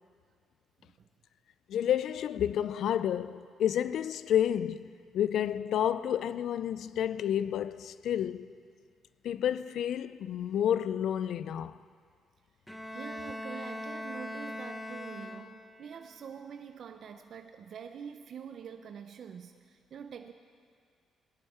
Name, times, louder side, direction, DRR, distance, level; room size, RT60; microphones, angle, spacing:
voice 1, 1.7-8.5 9.2-11.8, left 10 dB, 70° left, 0.3 m, -30 dB
Bowed string instrument, 12.7-15.9, left 1 dB, 5° left, 1.0 m, -40 dB
voice 2, 12.9-20.3, right 7 dB, 60° right, 0.5 m, -45 dB
17.5 x 11.0 x 4.3 m
cardioid pair, 90°, 0 cm